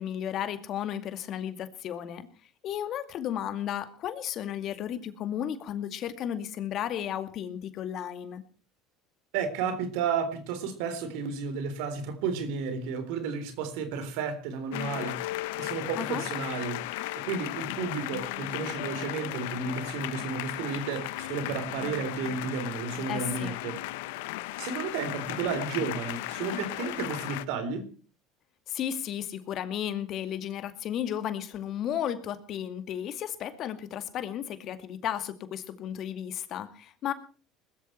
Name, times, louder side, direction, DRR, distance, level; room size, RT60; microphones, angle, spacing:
voice 1, 0.0-2.3 2.6-8.4 16.0-16.2 23.1-23.5 28.7-37.1, left 10 dB, 55° left, 2.3 m, -34 dB
voice 2, 9.3-15.2 15.6-23.8 24.6-27.9, right 5 dB, 75° right, 3.9 m, -32 dB
sound 1, 14.7-27.4, left 18 dB, 80° left, 0.9 m, -36 dB
20.5 x 13.5 x 4.6 m
supercardioid pair, 90°, 0 cm